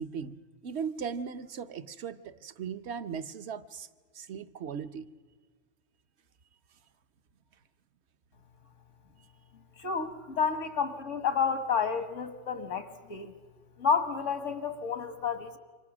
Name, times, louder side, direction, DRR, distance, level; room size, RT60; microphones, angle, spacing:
voice 1, 0.0-3.9 4.1-5.0, right 6 dB, 65° right, 12 dB, 1.1 m, -38 dB
voice 2, 9.8-13.3 13.8-15.6, left 6 dB, 85° left, 10 dB, 1.9 m, -30 dB
27.5 x 25.0 x 6.1 m, 1.5 s
omnidirectional pair, 1.2 m